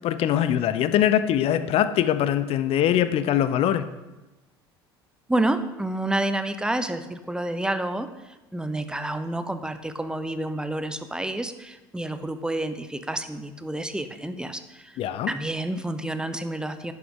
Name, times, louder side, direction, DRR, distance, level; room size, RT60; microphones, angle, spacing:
voice 1, 0.0-3.9 15.0-15.3, left 10 dB, 45° left, 12 dB, 0.7 m, -22 dB
voice 2, 5.3-8.1 8.5-15.0 15.3-16.9, right 1 dB, 5° right, 10 dB, 0.8 m, -29 dB
11.0 x 7.9 x 3.8 m, 1.1 s
figure-of-eight pair, 65°, 13 cm